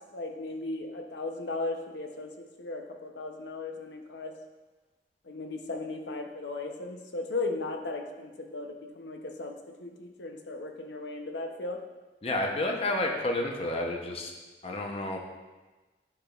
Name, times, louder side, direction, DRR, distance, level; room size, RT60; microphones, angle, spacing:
voice 1, 0.1-2.3 2.6-4.3 5.2-11.8, left 2 dB, 85° left, 4 dB, 0.7 m, -36 dB
voice 2, 12.2-14.3 14.6-15.2, left 1 dB, 35° left, 1 dB, 0.8 m, -30 dB
9.8 x 5.8 x 2.4 m, 1.2 s
head